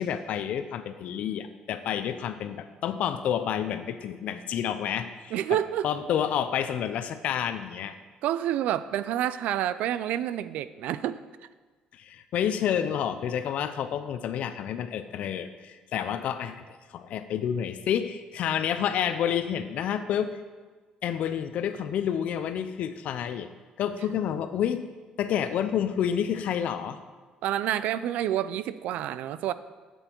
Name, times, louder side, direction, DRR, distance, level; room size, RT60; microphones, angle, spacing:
voice 1, 0.0-5.4 5.8-8.0 11.9-20.4 21.0-23.5 23.8-24.9 25.2-27.0, left 9 dB, 70° left, 11 dB, 0.6 m, -29 dB
voice 2, 5.3-5.9 8.2-11.2 12.9-13.0 27.4-29.5, right 11 dB, 80° right, 15 dB, 0.4 m, -28 dB
8.1 x 7.9 x 4.5 m, 1.4 s
cardioid pair, 105°, 2 cm